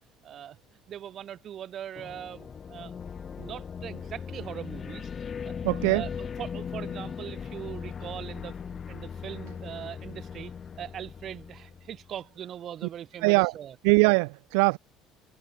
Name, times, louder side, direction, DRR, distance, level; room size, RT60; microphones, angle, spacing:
voice 1, 0.2-0.6 0.9-5.1 5.4-5.6 5.9-8.6 8.9-10.5 10.8-13.7, right 10 dB, 45° right, 3.3 m, -41 dB
sound 1, 1.9-12.1, left 7 dB, 35° left, 1.0 m, -39 dB
voice 2, 5.6-6.0 13.2-13.5 13.8-14.8, right 36 dB, 65° right, 0.5 m, -21 dB
figure-of-eight pair, 60°, 0 cm